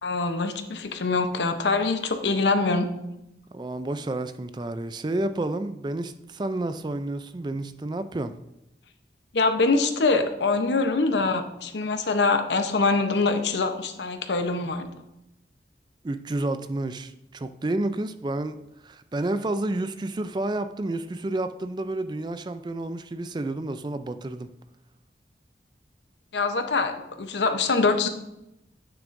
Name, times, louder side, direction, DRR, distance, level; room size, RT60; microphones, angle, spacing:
voice 1, 0.0-2.9 9.3-14.9 26.3-28.1, left 3 dB, 85° left, 7 dB, 0.8 m, -24 dB
voice 2, 3.5-8.3 16.0-18.6 18.8-24.5, right 2 dB, 25° right, 11 dB, 0.3 m, -30 dB
9.0 x 6.9 x 2.6 m, 0.87 s
head